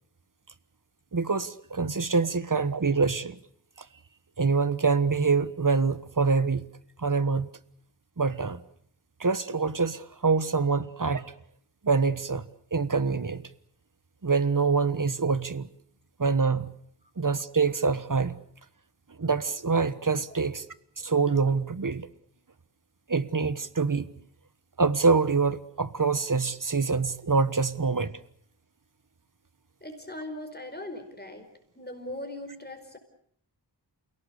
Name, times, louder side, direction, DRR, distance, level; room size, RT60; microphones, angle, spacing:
voice 1, 1.1-3.4 4.4-6.7 7.0-7.5 8.2-8.6 9.2-11.3 11.8-13.4 14.2-15.7 16.2-16.7 17.2-18.4 19.2-20.6 21.0-22.1 23.1-24.1 24.8-28.1, right 4 dB, 50° right, 1.3 m, -25 dB
voice 2, 29.8-31.5 31.7-33.0, left 1 dB, 25° left, 4.9 m, -39 dB
28.5 x 18.0 x 8.4 m
wide cardioid pair, 60°, 42 cm